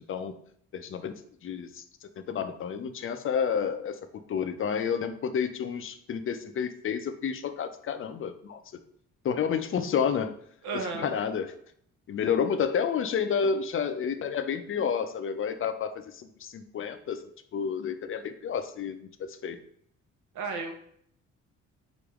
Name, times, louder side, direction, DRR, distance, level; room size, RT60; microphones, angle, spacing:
voice 1, 0.7-1.1 1.4-1.8 2.3-4.0 4.3-8.6 9.2-10.3 10.9-11.5 12.1-17.2 17.5-19.6, left 7 dB, 45° left, 9 dB, 0.4 m, -30 dB
voice 2, 10.6-11.1 20.3-20.7, right 4 dB, 75° right, 3 dB, 0.9 m, -33 dB
4.0 x 3.4 x 3.4 m, 0.66 s
cardioid pair, 90°, 30 cm